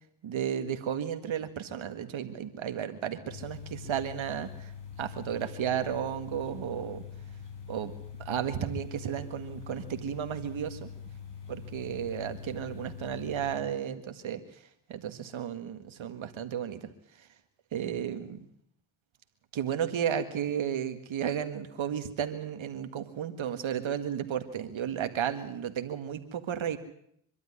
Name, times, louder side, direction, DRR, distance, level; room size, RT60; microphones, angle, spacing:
voice 1, 0.2-4.7 5.0-7.0 7.7-7.9 8.3-10.9 11.5-14.4 14.9-16.9 17.7-18.5 19.5-26.8, right 9 dB, 70° right, 8 dB, 1.9 m, -33 dB
sound 1, 3.3-13.6, left 7 dB, 60° left, 5.2 m, -44 dB
25.0 x 12.0 x 10.0 m, 0.71 s
cardioid pair, 65°, 48 cm